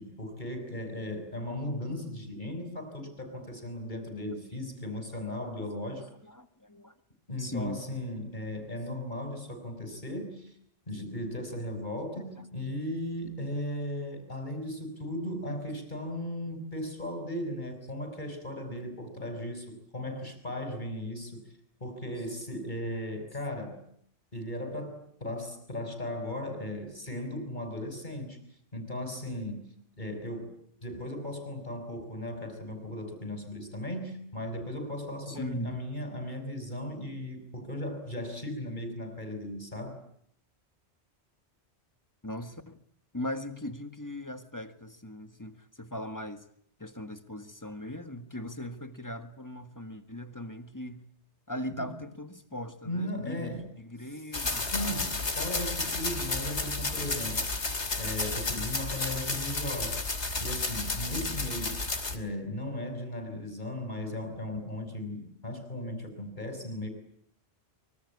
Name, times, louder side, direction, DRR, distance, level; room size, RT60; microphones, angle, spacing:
voice 1, 0.0-6.1 7.3-10.6 10.9-21.4 21.8-23.8 24.3-28.4 28.7-29.7 30.0-30.5 30.8-40.0 51.8-51.9 52.8-53.7 54.6-55.1 55.4-61.7 62.1-66.9, left 1 dB, 45° left, 7 dB, 6.0 m, -37 dB
voice 2, 5.6-6.9 7.4-7.8 12.2-12.5 35.3-35.8 42.2-42.8 43.1-46.4 46.8-51.1 51.5-55.1, left 1 dB, 15° left, 9 dB, 1.7 m, -39 dB
sound 1, 54.3-62.2, left 3 dB, 80° left, 3.1 m, -32 dB
25.0 x 24.5 x 8.5 m, 0.67 s
omnidirectional pair, 1.1 m